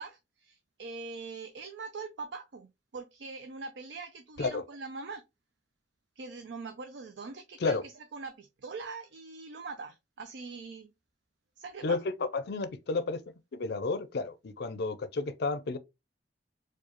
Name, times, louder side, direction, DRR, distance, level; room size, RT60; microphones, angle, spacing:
voice 1, 0.0-5.2 6.2-10.9 11.6-12.0, right 4 dB, 70° right, 0.5 m, -42 dB
voice 2, 11.8-13.2 13.5-15.8, left 3 dB, 60° left, 0.5 m, -31 dB
4.6 x 2.3 x 2.9 m
head